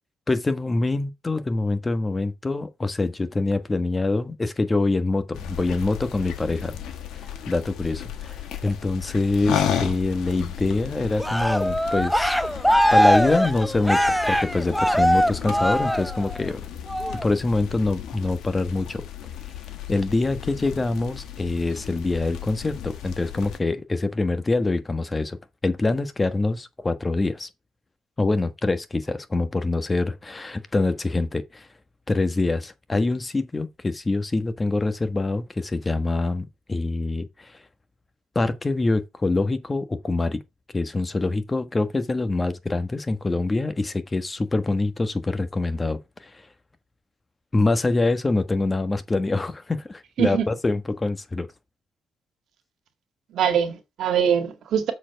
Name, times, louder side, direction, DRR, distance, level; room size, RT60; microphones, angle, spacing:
voice 1, 0.3-6.8 7.5-12.4 12.9-16.6 17.2-19.0 19.9-25.4 25.6-27.5 28.2-31.7 32.1-37.5 38.3-40.4 40.7-46.4 47.5-51.5, left 2 dB, 20° left, 1.2 m, -25 dB
sound 1, 5.3-23.6, left 9 dB, 80° left, 1.4 m, -34 dB
Cheering, 11.2-16.4 16.9-17.3, equal, ahead, 0.5 m, -21 dB
voice 2, 50.2-50.5 53.3-54.9, right 8 dB, 70° right, 1.9 m, -23 dB
7.2 x 4.5 x 5.8 m
cardioid pair, 90°, 0 cm